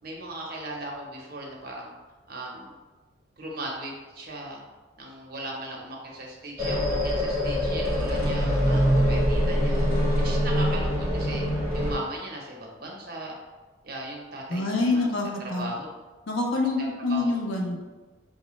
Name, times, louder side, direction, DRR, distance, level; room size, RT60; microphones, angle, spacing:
voice 1, 0.0-1.9 2.3-2.7 3.4-4.6 5.0-9.9 10.2-11.4 11.7-13.3 13.8-15.1 15.4-15.9 16.8-17.3, right 1 dB, 50° right, -2 dB, 0.7 m, -38 dB
sound 1, 6.6-11.9, equal, 10° right, 0.9 m, -24 dB
voice 2, 14.5-15.7 16.3-17.8, left 2 dB, 80° left, 0 dB, 0.6 m, -26 dB
4.6 x 2.1 x 3.0 m, 1.3 s
head